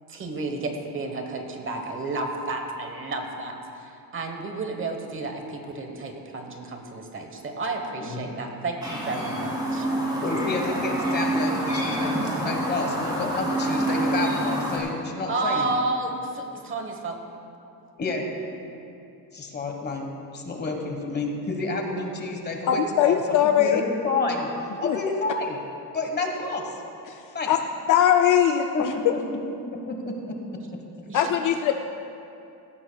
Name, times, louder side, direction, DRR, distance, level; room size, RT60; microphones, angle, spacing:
voice 1, 0.1-9.9 15.3-17.2 31.1-31.3, right 3 dB, 30° right, 4 dB, 1.1 m, -31 dB
voice 2, 8.0-8.3 10.0-15.7 18.0-18.2 19.3-20.1 20.3-24.5 24.8-25.6 25.9-26.7 27.3-27.5 28.7-29.2 29.9-30.3, left 3 dB, 25° left, 2 dB, 1.3 m, -30 dB
Chirp tweet, 8.8-14.8, right 1 dB, 10° right, 2.4 m, -27 dB
voice 3, 22.7-23.8 24.8-25.0 27.1-27.6 27.9-29.1 31.1-31.7, left 10 dB, 50° left, 6 dB, 0.5 m, -21 dB
17.0 x 14.5 x 2.3 m, 2.7 s
cardioid pair, 160°, 41 cm